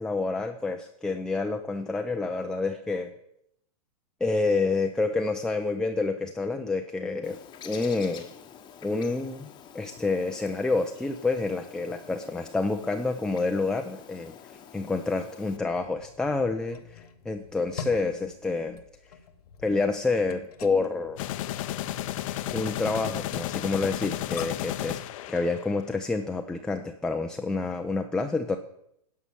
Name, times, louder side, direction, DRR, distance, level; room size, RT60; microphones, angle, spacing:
voice 1, 0.0-3.1 4.2-7.4 7.6-8.3 8.8-9.5 9.7-18.8 19.6-21.2 22.5-25.0 25.3-28.6, left 3 dB, 5° left, 4 dB, 0.4 m, -28 dB
Bird, 7.2-15.6, left 8 dB, 25° left, 1.0 m, -48 dB
sound 1, 15.6-24.8, left 6 dB, 80° left, 1.0 m, -45 dB
sound 2, 21.2-26.0, left 13 dB, 60° left, 0.6 m, -33 dB
11.0 x 5.6 x 6.9 m, 0.76 s
hypercardioid pair, 135°, 19 cm